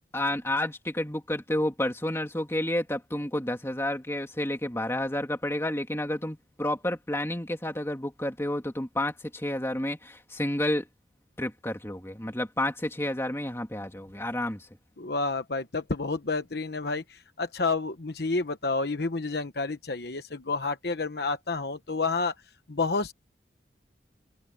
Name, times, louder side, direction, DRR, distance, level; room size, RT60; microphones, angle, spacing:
voice 1, 0.1-10.9 11.4-14.7, left 1 dB, 15° left, 2.6 m, -30 dB
voice 2, 15.0-22.3 22.7-23.1, left 3 dB, 60° left, 1.0 m, -29 dB
head